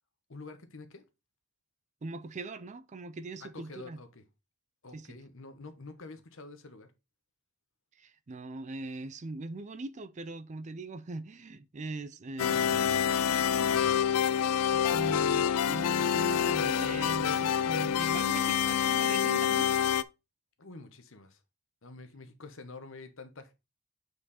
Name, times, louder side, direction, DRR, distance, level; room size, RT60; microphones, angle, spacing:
voice 1, 0.3-1.0 3.4-4.2 4.8-6.9 20.6-21.4 21.8-23.5, left 3 dB, 60° left, 1.2 m, -47 dB
voice 2, 2.0-4.0 4.9-5.1 8.0-13.1 13.6-14.0 14.7-19.7, right 2 dB, 30° right, 0.4 m, -41 dB
sound 1, 12.4-20.0, left 8 dB, 80° left, 0.4 m, -27 dB
7.6 x 4.6 x 4.2 m
head